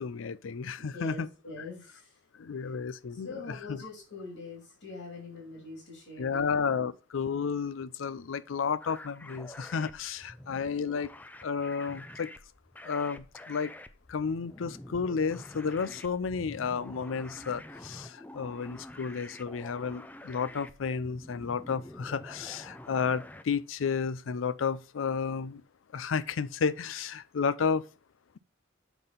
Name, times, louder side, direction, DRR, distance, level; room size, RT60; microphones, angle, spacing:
voice 1, 0.0-1.3 2.4-3.4 3.7-3.8 6.2-11.1 11.4-12.3 12.8-13.7 14.1-25.6 25.9-27.8, left 5 dB, 90° left, 0.5 m, -32 dB
voice 2, 0.8-2.2 2.7-2.8 3.1-6.7, left 3 dB, 70° left, 2.7 m, -44 dB
sound 1, 8.8-23.4, left 1 dB, 10° left, 0.4 m, -48 dB
7.0 x 5.8 x 4.0 m
head